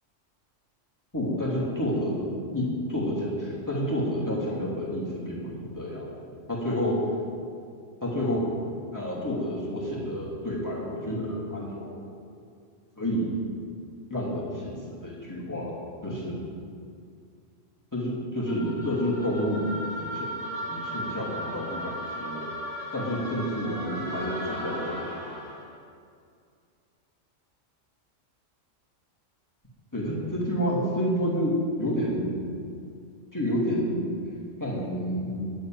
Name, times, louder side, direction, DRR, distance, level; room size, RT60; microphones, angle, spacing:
voice 1, 1.1-2.2 2.5-7.0 8.0-8.5 8.9-12.0 13.0-13.4 14.1-15.8 16.0-16.4 17.9-19.7 20.0-20.3 20.7-22.5 22.9-25.1 29.9-32.3 33.3-34.1 34.6-35.5, equal, 15° left, -7 dB, 3.1 m, -29 dB
sound 1, 18.5-25.7, equal, 45° right, 2.2 m, -36 dB
10.0 x 7.9 x 9.1 m, 2.3 s
omnidirectional pair, 1.4 m